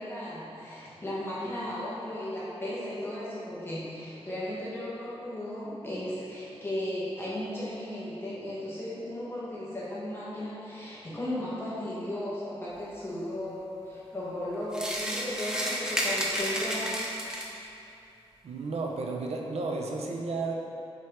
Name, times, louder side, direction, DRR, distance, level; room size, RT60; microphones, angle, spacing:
voice 1, 0.0-17.1, left 1 dB, 20° left, -9 dB, 1.2 m, -35 dB
sound 1, 14.7-17.6, equal, 5° right, 0.6 m, -31 dB
voice 2, 18.4-20.5, right 3 dB, 80° right, 0 dB, 0.6 m, -32 dB
5.7 x 4.5 x 3.6 m, 2.7 s
wide cardioid pair, 145°, 11 cm